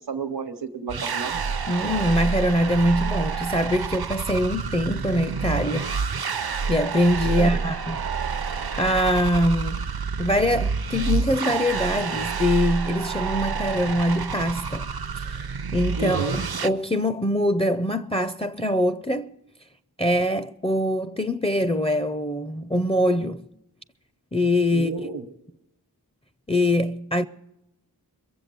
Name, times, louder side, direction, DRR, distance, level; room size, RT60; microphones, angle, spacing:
voice 1, 0.1-1.4 7.3-7.5 16.0-16.4 24.7-25.2, right 4 dB, 85° right, 1.1 m, -31 dB
sound 1, 0.9-16.7, right 5 dB, 70° right, 0.6 m, -28 dB
voice 2, 1.7-5.9 6.7-8.0 8.8-9.9 10.2-14.9 15.2-15.5 15.7-19.3 20.0-23.5 24.3-25.1 26.5-27.2, equal, 15° left, 0.4 m, -23 dB
22.5 x 7.5 x 6.7 m
wide cardioid pair, 45°, 39 cm